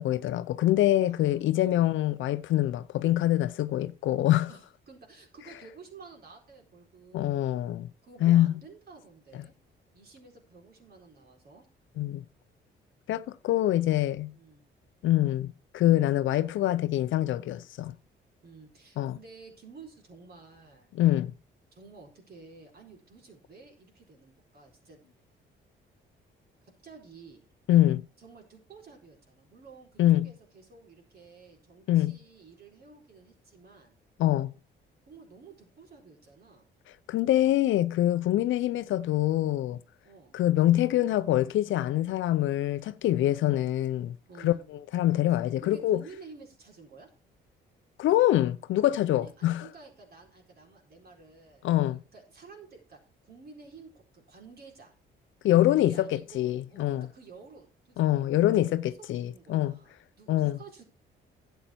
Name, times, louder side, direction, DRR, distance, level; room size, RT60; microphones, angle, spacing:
voice 1, 0.0-4.5 7.1-7.9 8.2-8.5 12.0-12.2 13.1-14.3 15.0-17.9 19.0-19.2 20.9-21.3 27.7-28.0 30.0-30.3 31.9-32.2 34.2-34.5 37.1-39.8 40.3-44.2 44.4-46.0 48.0-49.7 51.6-52.0 55.4-57.1 58.0-59.7 60.3-60.6, left 14 dB, 80° left, 0.6 m, -25 dB
voice 2, 1.0-1.8 4.5-7.5 8.0-9.5 9.9-11.7 14.3-14.7 18.4-20.9 21.7-25.0 26.6-27.4 28.2-34.0 35.1-36.7 40.0-40.4 43.5-43.7 44.3-44.6 45.3-47.1 49.1-51.6 52.1-54.9 55.8-60.8, right 4 dB, 50° right, 4.3 m, -52 dB
11.0 x 8.1 x 4.4 m
cardioid pair, 90°, 20 cm